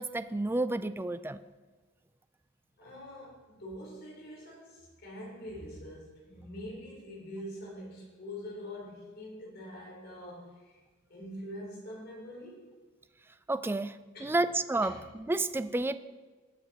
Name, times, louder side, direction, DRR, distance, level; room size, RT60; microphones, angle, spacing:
voice 1, 0.0-1.4 13.5-16.0, right 2 dB, 10° right, 13 dB, 0.3 m, -31 dB
voice 2, 2.8-10.8 11.1-12.6 14.1-14.4 14.8-15.0, left 1 dB, 55° left, -4 dB, 3.8 m, -44 dB
17.5 x 6.0 x 4.2 m, 1.3 s
head